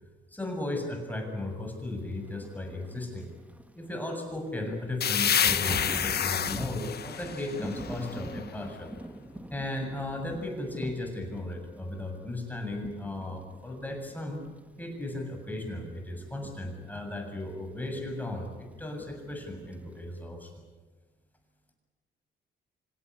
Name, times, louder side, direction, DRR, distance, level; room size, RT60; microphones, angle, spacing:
voice 1, 0.3-3.3 3.7-8.9 9.5-14.4 14.8-20.6, left 1 dB, 10° left, 2 dB, 7.5 m, -36 dB
Thunder / Rain, 2.1-20.2, right 1 dB, 5° right, 1.8 m, -45 dB
sound 1, 5.0-8.6, left 8 dB, 55° left, 1.4 m, -29 dB
26.5 x 17.5 x 10.0 m, 1.3 s
cardioid pair, 90°, 20 cm